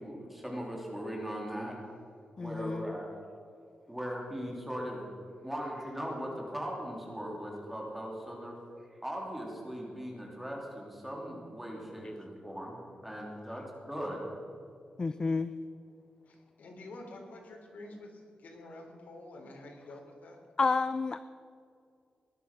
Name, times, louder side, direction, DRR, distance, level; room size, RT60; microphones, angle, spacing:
voice 1, 0.0-1.8 2.4-3.1 3.9-5.1 5.4-8.6 8.9-14.3, equal, 5° right, -2 dB, 3.1 m, -39 dB
voice 2, 2.4-3.0 15.0-15.5 20.6-21.2, left 4 dB, 30° left, 13 dB, 0.4 m, -30 dB
voice 3, 16.3-20.4, left 2 dB, 85° left, 1 dB, 3.6 m, -48 dB
18.5 x 11.5 x 6.1 m, 2.4 s
wide cardioid pair, 155°, 3 cm